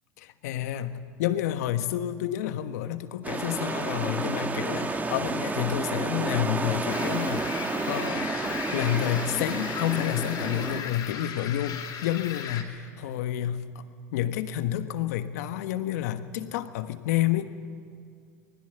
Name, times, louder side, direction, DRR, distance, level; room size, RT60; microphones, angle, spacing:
voice 1, 0.2-8.4 8.7-13.8 14.1-17.5, left 12 dB, 75° left, 10 dB, 1.3 m, -29 dB
sound 1, 3.2-10.8, right 3 dB, 20° right, 1.5 m, -31 dB
sound 2, 6.9-12.6, left 7 dB, 50° left, 3.6 m, -37 dB
26.0 x 20.0 x 7.0 m, 2.2 s
hypercardioid pair, 85°, 9 cm